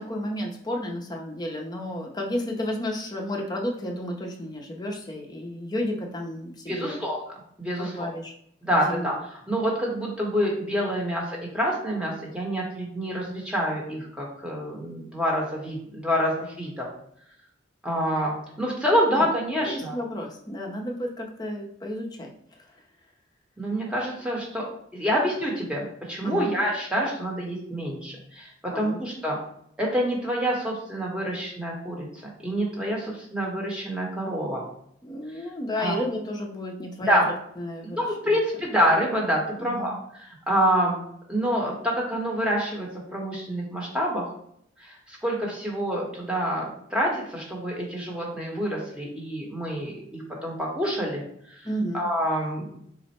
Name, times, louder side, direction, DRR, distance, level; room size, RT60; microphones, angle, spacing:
voice 1, 0.0-7.0 7.8-8.3 8.6-9.0 19.1-19.2 19.7-22.3 22.7-22.8 26.2-26.5 28.7-29.0 35.0-37.2 37.6-38.4 39.6-40.0 51.6-52.1, left 1 dB, 20° left, 1 dB, 0.5 m, -32 dB
voice 2, 6.7-7.2 7.6-8.1 8.6-9.1 9.5-16.9 17.8-20.0 23.6-24.6 24.9-29.4 29.8-32.1 32.4-34.6 35.8-35.9 37.1-37.3 37.8-41.0 41.3-44.3 44.8-51.2 51.9-52.7, equal, 5° right, -3 dB, 0.9 m, -27 dB
4.2 x 2.1 x 4.1 m, 0.69 s
head